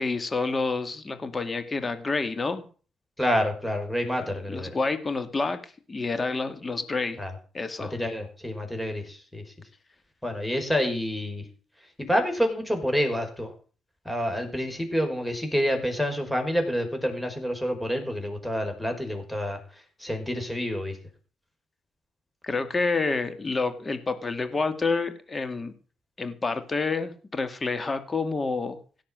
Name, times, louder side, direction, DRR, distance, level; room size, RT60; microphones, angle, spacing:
voice 1, 0.0-2.6 4.5-5.6 5.9-7.2 7.5-7.9 22.4-25.7 26.2-28.8, left 3 dB, 30° left, 10 dB, 2.2 m, -28 dB
voice 2, 3.2-4.8 7.2-7.3 7.8-9.4 10.2-11.4 12.1-13.5 14.0-19.6 20.0-21.0, equal, 5° left, 5 dB, 5.2 m, -28 dB
17.0 x 7.2 x 7.7 m, 0.39 s
cardioid pair, 90°, 0 cm